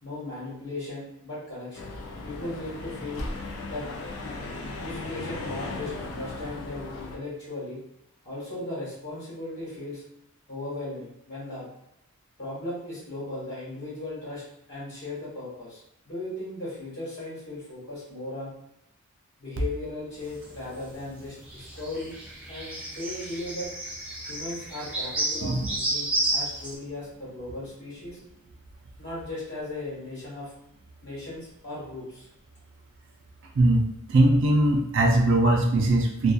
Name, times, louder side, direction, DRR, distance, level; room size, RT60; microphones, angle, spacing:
voice 1, 0.0-1.9 2.2-3.2 3.7-3.9 4.6-7.8 8.2-10.0 10.5-11.7 12.4-14.4 14.7-18.6 19.4-22.1 22.5-23.7 24.2-28.2 29.0-30.5 31.0-32.3, left 2 dB, 55° left, -8 dB, 1.2 m, -37 dB
sound 1, 1.7-7.2, left 2 dB, 85° left, 0.5 m, -36 dB
sound 2, 20.2-26.7, right 1 dB, 5° right, 0.6 m, -32 dB
voice 2, 34.1-36.3, right 1 dB, 60° right, 2 dB, 0.4 m, -20 dB
2.6 x 2.2 x 2.3 m, 0.78 s
head